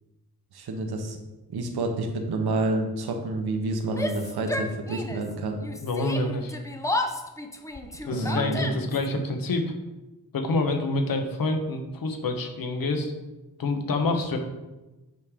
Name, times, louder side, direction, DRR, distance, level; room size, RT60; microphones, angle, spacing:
voice 1, 0.5-1.2 1.5-5.6 8.1-8.7, right 2 dB, 75° right, 4 dB, 1.0 m, -29 dB
Yell, 3.9-5.3 5.6-9.1, left 2 dB, 10° left, 0.5 m, -32 dB
voice 2, 5.8-6.5 8.0-9.7 10.3-13.1 13.6-14.4, left 2 dB, 60° left, 5 dB, 1.1 m, -27 dB
8.1 x 4.9 x 3.7 m, 1.1 s
wide cardioid pair, 110°, 38 cm